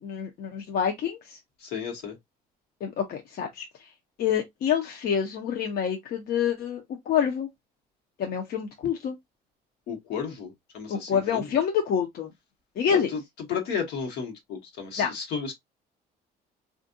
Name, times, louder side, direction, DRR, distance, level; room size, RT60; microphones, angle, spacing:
voice 1, 0.0-1.4 2.8-3.6 4.2-7.5 8.2-9.2 10.9-12.3 12.8-13.1 15.0-15.1, left 8 dB, 60° left, 0.7 m, -27 dB
voice 2, 1.6-2.1 9.9-11.5 12.9-13.2 13.5-15.5, left 6 dB, 80° left, 1.2 m, -33 dB
3.4 x 2.5 x 2.5 m
cardioid pair, 110°, 17 cm